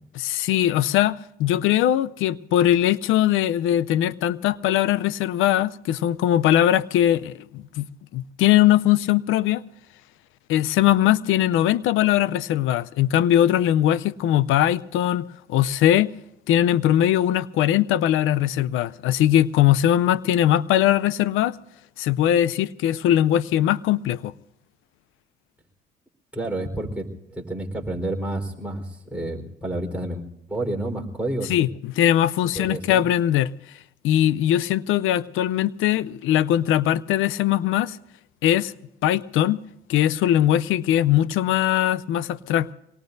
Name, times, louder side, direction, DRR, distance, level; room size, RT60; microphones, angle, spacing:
voice 1, 0.1-7.9 8.1-9.6 10.5-16.1 16.5-21.6 22.0-24.3 31.5-33.5 34.0-38.0 38.4-38.7 39.0-39.6 39.9-42.7, left 12 dB, 90° left, 0.6 m, -20 dB
voice 2, 26.3-31.5 32.5-33.0, right 1 dB, 5° right, 4.0 m, -30 dB
25.0 x 19.5 x 2.6 m
cardioid pair, 90°, 20 cm